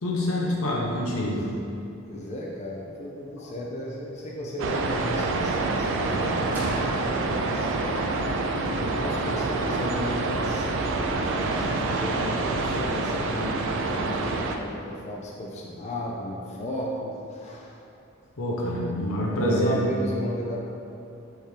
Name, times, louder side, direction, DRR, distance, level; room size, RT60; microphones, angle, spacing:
voice 1, 0.0-1.4 18.4-19.8, left 1 dB, 90° left, -3 dB, 0.8 m, -26 dB
voice 2, 2.0-7.8 8.7-17.8 19.3-20.6, left 1 dB, 35° left, -3 dB, 0.4 m, -35 dB
sound 1, 4.6-14.6, right 3 dB, 60° right, 0.4 m, -27 dB
sound 2, 6.5-10.4, equal, 5° right, 0.8 m, -43 dB
4.5 x 3.5 x 3.2 m, 2.7 s
head